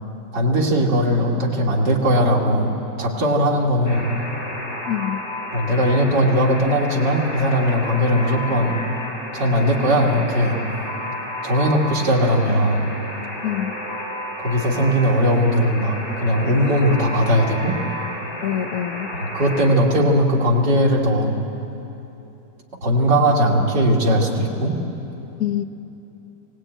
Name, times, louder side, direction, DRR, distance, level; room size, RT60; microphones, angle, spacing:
voice 1, 0.3-4.1 5.5-8.8 9.3-10.6 11.4-12.9 14.4-17.8 19.3-21.3 22.8-24.8, equal, 80° right, -3 dB, 2.9 m, -19 dB
Alarm, 3.8-19.7, equal, 25° left, 3.3 m, -32 dB
voice 2, 4.9-5.2 13.4-13.7 18.4-19.1 25.4-25.6, left 11 dB, 65° left, 8 dB, 1.1 m, -25 dB
22.5 x 18.0 x 9.1 m, 3.0 s
omnidirectional pair, 1.9 m